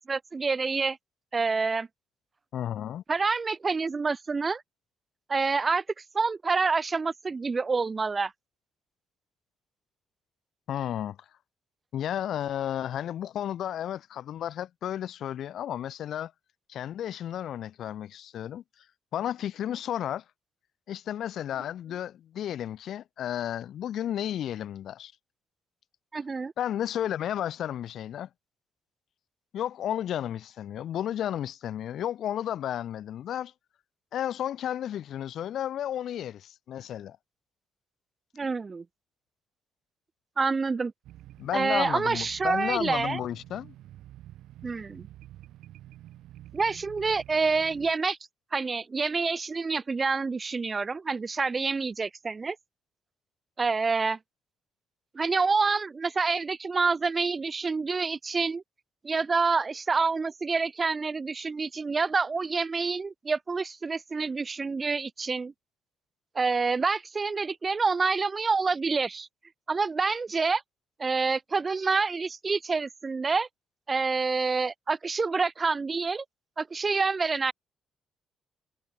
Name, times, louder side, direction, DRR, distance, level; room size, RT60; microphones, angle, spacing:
voice 1, 0.1-1.0 1.3-1.9 3.1-4.6 5.3-5.8 6.1-8.3 26.1-26.5 38.3-38.8 40.4-40.9 41.5-43.2 44.6-45.1 46.5-48.2 48.5-52.6 53.6-54.2 55.1-58.6 59.0-65.5 66.3-69.3 69.7-70.6 71.0-73.5 73.9-76.2 76.6-77.5, right 4 dB, 25° right, 0.8 m, -27 dB
voice 2, 2.5-3.0 10.7-11.2 11.9-16.3 16.7-18.6 19.1-20.2 20.9-25.1 26.6-28.3 29.5-33.5 34.1-37.2 41.4-43.7, left 10 dB, 65° left, 0.9 m, -32 dB
sound 1, 41.0-47.9, right 14 dB, 90° right, 2.8 m, -49 dB
cardioid pair, 145°, 0 cm